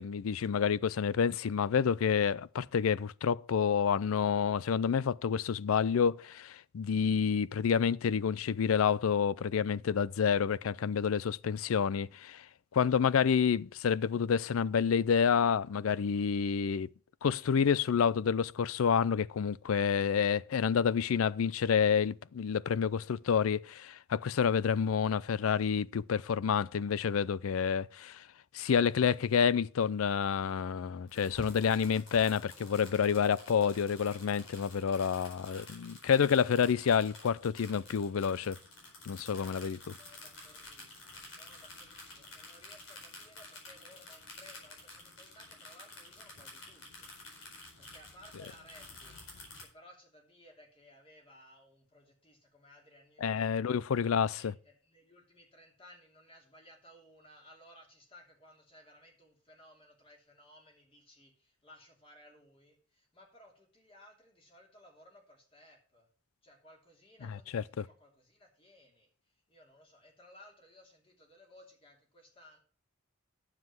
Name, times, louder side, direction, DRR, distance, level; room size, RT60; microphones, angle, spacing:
voice 1, 0.0-12.4 12.7-16.9 17.2-28.2 28.5-38.6 39.0-39.9 53.2-54.5 67.2-67.6, left 7 dB, 90° left, 0.4 m, -29 dB
sound 1, 31.1-49.6, left 2 dB, 70° left, 4.7 m, -51 dB
voice 2, 39.8-47.1 47.8-53.6 53.9-66.1 66.4-69.1 69.5-72.6, left 1 dB, 25° left, 2.8 m, -59 dB
9.7 x 7.4 x 6.0 m
head